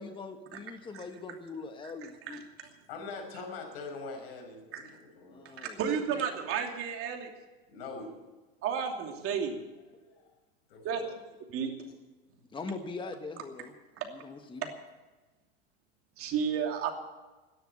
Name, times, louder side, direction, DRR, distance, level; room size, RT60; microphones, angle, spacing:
voice 1, 0.0-2.4 5.3-5.8 12.5-13.7 14.1-14.7, left 3 dB, 15° left, 6 dB, 1.3 m, -42 dB
voice 2, 2.9-5.4 6.1-6.2 7.7-8.1 10.0-10.3 10.7-11.1, left 3 dB, 75° left, 2 dB, 5.6 m, -43 dB
voice 3, 5.4-7.3 8.6-9.6 10.8-11.0 11.5-11.7 14.0-14.1 16.2-16.9, right 7 dB, 45° right, 3 dB, 2.8 m, -32 dB
12.5 x 10.5 x 9.1 m, 1.2 s
hypercardioid pair, 105°, 31 cm